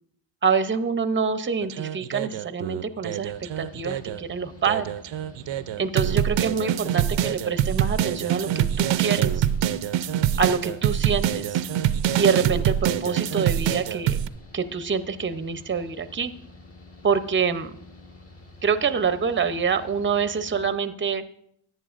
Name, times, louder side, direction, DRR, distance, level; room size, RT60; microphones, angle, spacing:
voice 1, 0.4-4.8 5.8-9.5 10.4-11.6 12.2-14.2 14.5-16.3 17.0-17.8 18.6-21.2, right 6 dB, 25° right, 11 dB, 0.6 m, -26 dB
sound 1, 1.6-4.2 4.7-14.3, right 10 dB, 75° right, 0.5 m, -25 dB
Mechanical fan, 3.3-20.7, left 2 dB, 30° left, 1.8 m, -48 dB
14.0 x 9.1 x 2.5 m, 0.71 s
cardioid pair, 75°, 45 cm